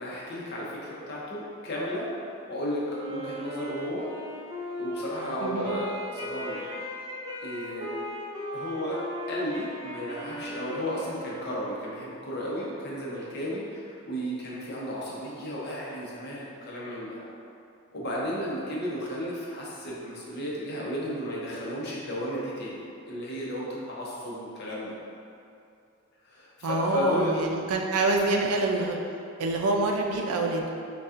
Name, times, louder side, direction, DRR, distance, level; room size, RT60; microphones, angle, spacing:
voice 1, 0.0-2.1 2.5-4.1 4.8-6.8 7.4-7.9 8.5-17.2 17.9-25.0 26.2-27.3, equal, 50° left, -6 dB, 0.7 m, -33 dB
Wind instrument woodwind instrument, 2.9-11.7, left 1 dB, 20° right, 0.4 m, -37 dB
voice 2, 5.4-5.8 26.6-29.0 29.4-30.6, right 2 dB, 85° right, 1 dB, 0.4 m, -26 dB
5.2 x 2.3 x 2.5 m, 2.5 s
head